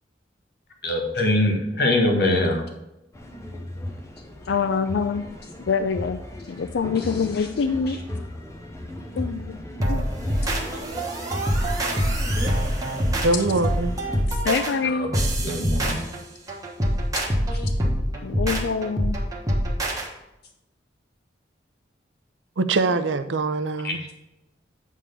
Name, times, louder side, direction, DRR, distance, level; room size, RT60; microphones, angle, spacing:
voice 1, 0.8-2.6 7.4-7.5 14.9-15.1 15.4-16.0 23.8-24.0, left 1 dB, 60° left, 2 dB, 1.5 m, -22 dB
sound 1, 3.1-14.2, left 1 dB, 15° left, 0.8 m, -36 dB
voice 2, 4.5-5.2 5.7-6.2 6.5-8.0 9.2-9.6 9.9-10.1 14.3-15.1 17.1-17.2 18.2-19.2, left 5 dB, 75° left, 9 dB, 0.4 m, -25 dB
sound 2, 9.8-20.1, equal, 20° right, 1.2 m, -25 dB
voice 3, 13.2-13.9 22.6-24.0, right 3 dB, 80° right, 10 dB, 0.6 m, -23 dB
8.4 x 3.7 x 6.8 m, 0.91 s
head